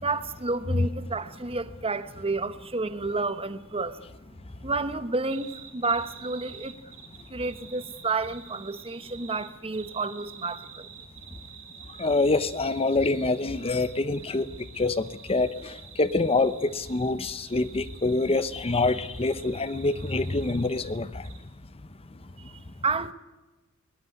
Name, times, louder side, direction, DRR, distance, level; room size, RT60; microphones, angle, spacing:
voice 1, 0.0-4.0 4.6-6.7 7.3-10.9 22.4-23.1, right 3 dB, 25° right, 1.1 m, -30 dB
sound 1, 5.3-21.0 21.2-21.4, right 8 dB, 65° right, 4.3 m, -48 dB
voice 2, 12.0-14.5 14.8-21.3, left 3 dB, 25° left, 0.8 m, -26 dB
22.0 x 19.0 x 9.6 m
head